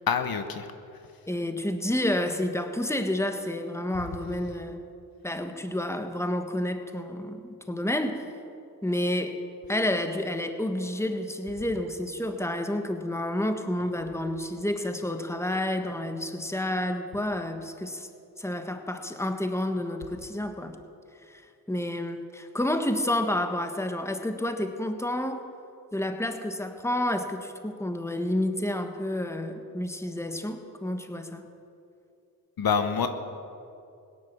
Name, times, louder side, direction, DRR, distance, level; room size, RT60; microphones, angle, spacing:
voice 1, 0.1-0.7 32.6-33.1, left 6 dB, 70° left, 8 dB, 1.1 m, -26 dB
voice 2, 1.3-4.8 5.2-8.2 8.8-9.4 9.7-18.1 18.4-20.7 21.3-21.4 21.7-25.4 25.9-31.4, left 1 dB, 5° left, 6 dB, 1.4 m, -30 dB
17.0 x 10.5 x 7.1 m, 2.6 s
cardioid pair, 55°, 37 cm